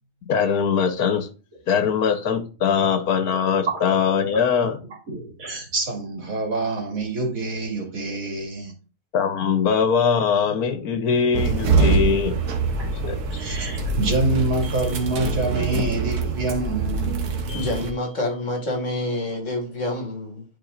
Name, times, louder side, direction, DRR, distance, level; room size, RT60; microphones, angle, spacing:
voice 1, 0.3-1.3 1.7-4.8 9.1-12.4 13.1-13.2, left 6 dB, 85° left, 1.5 m, -21 dB
voice 2, 5.1-8.7 10.7-11.0 13.0-17.2, right 2 dB, 65° right, 2.8 m, -27 dB
sound 1, 11.3-17.9, right 4 dB, 90° right, 1.6 m, -24 dB
sound 2, 11.8-12.8 14.6-15.9 17.5-19.0, left 4 dB, 15° left, 3.7 m, -48 dB
voice 3, 17.5-20.4, left 1 dB, 55° left, 2.4 m, -27 dB
11.0 x 4.7 x 2.5 m
omnidirectional pair, 1.6 m